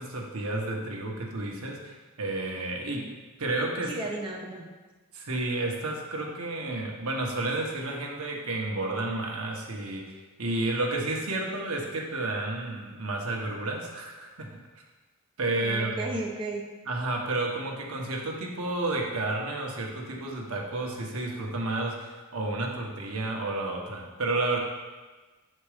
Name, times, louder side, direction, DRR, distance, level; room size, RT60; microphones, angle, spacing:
voice 1, 0.0-3.0 3.4-3.9 5.1-14.5 15.4-16.1 16.9-24.6, right 2 dB, 75° right, 0 dB, 1.2 m, -31 dB
voice 2, 3.9-4.7 15.6-16.6, right 2 dB, 25° right, -1 dB, 0.7 m, -34 dB
7.2 x 4.4 x 5.0 m, 1.2 s
head